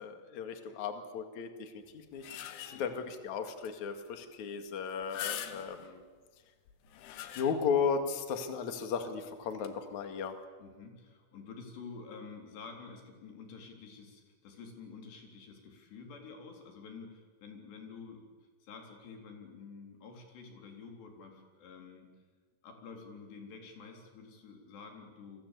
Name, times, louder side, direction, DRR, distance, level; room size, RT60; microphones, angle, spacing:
voice 1, 0.0-6.0 7.3-10.4, left 6 dB, 50° left, 7 dB, 3.0 m, -35 dB
sound 1, 1.9-3.0 3.6-3.7 4.1-4.2 4.9-6.0 6.7-7.9 8.3-8.4 9.5-9.7, left 10 dB, 85° left, 3.9 m, -43 dB
voice 2, 10.6-18.2 18.6-22.1 22.6-25.5, left 5 dB, 65° left, 3 dB, 5.9 m, -49 dB
29.5 x 23.5 x 8.4 m, 1.4 s
omnidirectional pair, 5.3 m